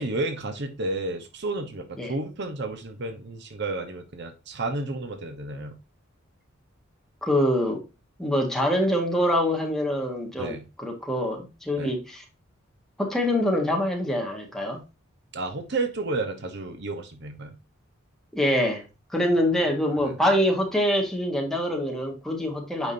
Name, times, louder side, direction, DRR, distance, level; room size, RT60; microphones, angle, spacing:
voice 1, 0.0-5.8 10.4-10.6 11.8-11.9 15.3-17.6 20.0-20.2, right 2 dB, 55° right, 6 dB, 1.0 m, -31 dB
voice 2, 7.2-7.8 8.2-12.2 13.0-14.8 18.3-18.8 19.1-22.9, equal, ahead, 0 dB, 1.6 m, -25 dB
9.0 x 5.1 x 2.7 m, 0.27 s
head